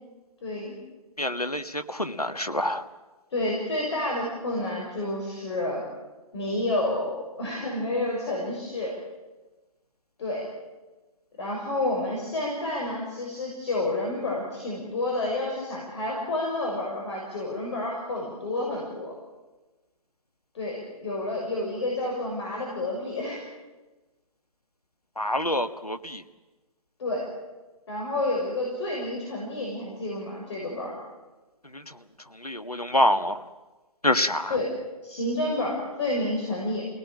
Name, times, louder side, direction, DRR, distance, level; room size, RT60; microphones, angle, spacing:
voice 1, 0.4-0.7 3.3-5.8 6.3-8.9 10.2-10.5 11.4-19.1 20.5-23.4 27.0-27.3 27.9-30.9 34.5-34.7 35.0-36.8, left 2 dB, 50° left, -2 dB, 6.9 m, -29 dB
voice 2, 1.2-2.8 25.2-26.2 32.4-33.4 34.0-34.5, left 1 dB, 90° left, 9 dB, 1.7 m, -26 dB
29.5 x 18.5 x 8.8 m, 1.2 s
figure-of-eight pair, 130°, 19 cm